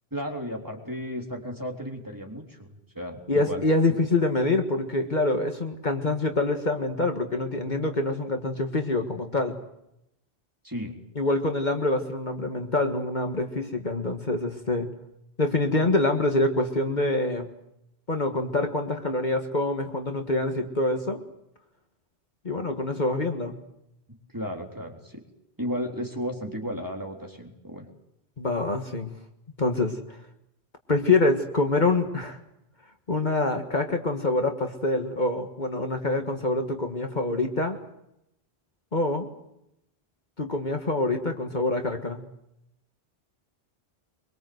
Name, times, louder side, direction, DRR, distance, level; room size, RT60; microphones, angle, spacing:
voice 1, 0.1-2.7 2.9-3.6 10.6-10.9 24.3-25.2 25.6-27.8, equal, 20° right, 1 dB, 3.8 m, -34 dB
voice 2, 3.3-9.6 11.2-14.9 15.4-17.5 18.1-21.2 22.5-23.5 28.4-29.1 29.6-30.0 30.9-32.4 33.1-37.8 38.9-39.3 40.4-42.2, left 2 dB, 45° left, 5 dB, 1.8 m, -25 dB
24.0 x 23.5 x 8.0 m, 0.82 s
omnidirectional pair, 1.1 m